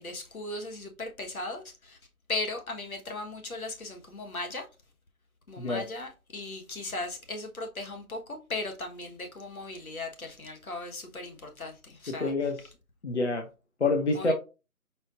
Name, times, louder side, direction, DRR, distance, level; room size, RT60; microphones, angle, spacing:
voice 1, 0.0-2.0 2.3-4.6 5.5-12.3 14.1-14.3, left 2 dB, 70° left, 1.4 m, -37 dB
voice 2, 12.1-12.7 13.0-13.5 13.8-14.3, left 3 dB, 50° left, 0.7 m, -27 dB
4.5 x 4.2 x 2.5 m
figure-of-eight pair, 175°, 44 cm